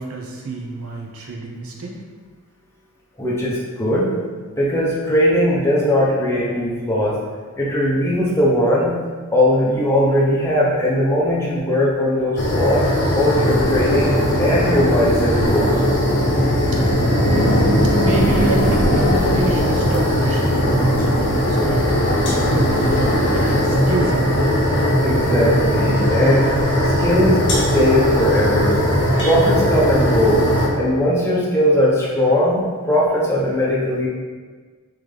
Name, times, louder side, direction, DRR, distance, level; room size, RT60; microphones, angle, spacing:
voice 1, 0.0-2.0 16.7-16.9 17.2-24.5, right 2 dB, 75° right, 0 dB, 0.7 m, -27 dB
voice 2, 3.2-4.1 4.6-7.2 7.6-9.0 9.3-12.9 13.1-15.8 25.0-26.5 27.0-28.8 29.2-30.5 30.8-34.1, left 1 dB, 10° left, -5 dB, 0.6 m, -19 dB
sound 1, 12.4-30.7, equal, 50° left, 0.8 m, -18 dB
3.8 x 3.1 x 3.3 m, 1.5 s
head